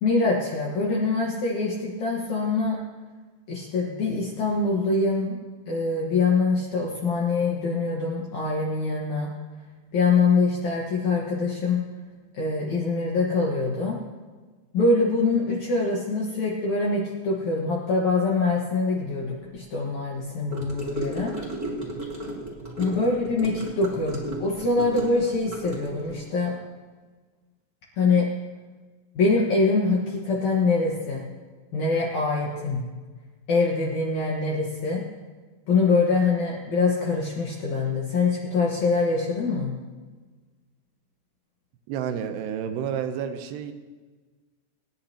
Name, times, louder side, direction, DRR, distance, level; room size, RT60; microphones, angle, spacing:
voice 1, 0.0-2.8 3.5-5.4 5.7-9.3 9.9-11.8 12.3-14.0 14.7-21.3 22.8-26.5 28.0-28.3 29.2-31.2 31.7-32.9 33.5-35.0 35.7-39.7, left 3 dB, 60° left, -4 dB, 2.2 m, -24 dB
Gurgling / Car passing by / Sink (filling or washing), 20.5-26.2, right 1 dB, 5° right, 2.3 m, -35 dB
voice 2, 41.9-43.7, right 8 dB, 85° right, 7 dB, 2.9 m, -30 dB
23.0 x 10.5 x 2.9 m, 1.4 s
omnidirectional pair, 4.7 m